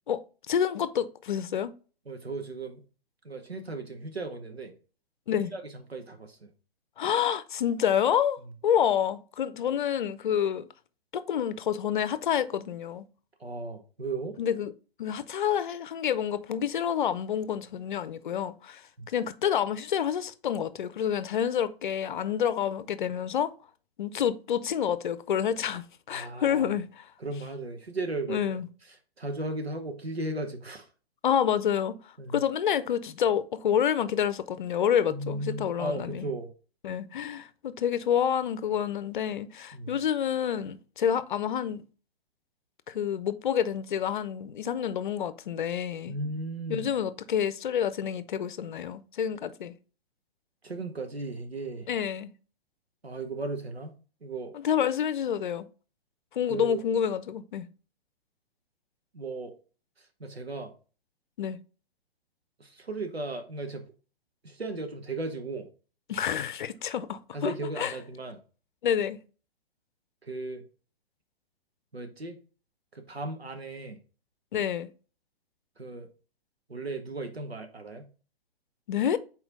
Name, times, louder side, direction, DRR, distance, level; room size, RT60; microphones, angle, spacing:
voice 1, 0.5-1.7 5.3-5.5 7.0-10.7 11.1-13.0 14.4-14.7 15.0-18.8 19.1-23.5 24.0-26.9 28.3-28.6 31.2-32.0 32.3-36.3 36.8-41.8 42.9-46.1 46.7-49.7 51.9-52.3 54.5-55.6 56.4-57.6 61.4-61.6 66.1-67.9 68.8-69.2 74.5-74.9 78.9-79.2, left 9 dB, 55° left, 0.6 m, -28 dB
voice 2, 2.1-2.8 3.2-4.7 5.4-6.5 9.7-9.8 13.4-14.4 19.0-19.1 26.1-26.8 27.2-30.9 32.2-32.4 35.1-36.5 39.7-40.0 46.1-46.9 50.6-51.9 53.0-53.9 54.2-54.5 56.5-56.8 59.1-59.5 60.0-60.7 62.6-63.9 64.4-65.7 67.3-68.4 70.2-70.6 71.9-72.4 72.9-74.0 75.8-76.1 76.7-78.1, right 2 dB, 85° right, 1.1 m, -36 dB
6.1 x 4.3 x 3.8 m
figure-of-eight pair, 115°, 30 cm